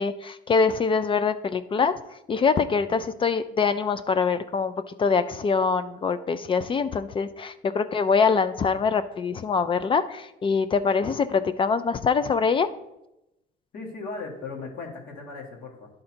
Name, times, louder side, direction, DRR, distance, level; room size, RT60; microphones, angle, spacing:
voice 1, 0.0-2.0 2.3-4.7 5.0-12.7, left 5 dB, 30° left, 12 dB, 0.3 m, -24 dB
voice 2, 13.7-15.9, left 3 dB, 60° left, -1 dB, 1.6 m, -37 dB
10.5 x 3.8 x 4.3 m, 0.89 s
cardioid pair, 110°, 17 cm